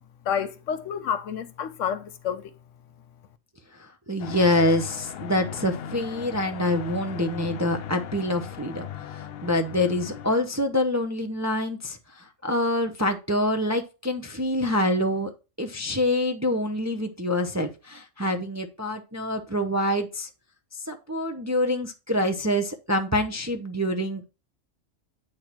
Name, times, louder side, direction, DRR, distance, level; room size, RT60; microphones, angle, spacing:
voice 1, 0.3-2.5, left 8 dB, 80° left, 1.0 m, -29 dB
voice 2, 3.8-15.3 15.6-20.3 20.7-24.2, left 1 dB, 20° right, 0.5 m, -26 dB
sound 1, 4.2-10.3, left 9 dB, 60° left, 0.7 m, -38 dB
8.7 x 3.0 x 5.7 m
omnidirectional pair, 1.3 m